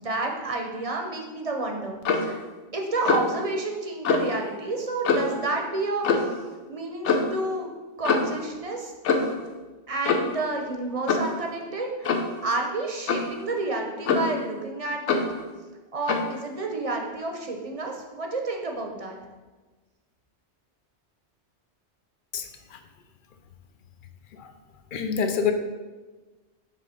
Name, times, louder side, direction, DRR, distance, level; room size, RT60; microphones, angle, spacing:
voice 1, 0.0-2.4 2.7-6.3 6.7-7.7 8.0-8.9 9.9-15.2 15.9-19.2, right 2 dB, 35° right, 2 dB, 0.7 m, -30 dB
Clock, 2.0-2.3 3.1-3.4 4.0-4.3 5.0-5.4 6.0-6.4 7.0-7.3 8.0-8.4 9.0-9.4 10.0-10.4 11.1-11.3 12.0-12.3 13.1-13.3 14.1-14.4 15.1-15.3 16.1-16.3, left 4 dB, 85° left, 1.0 m, -24 dB
voice 2, 24.9-25.5, left 7 dB, 55° left, 7 dB, 0.7 m, -25 dB
5.7 x 3.7 x 5.5 m, 1.3 s
omnidirectional pair, 1.2 m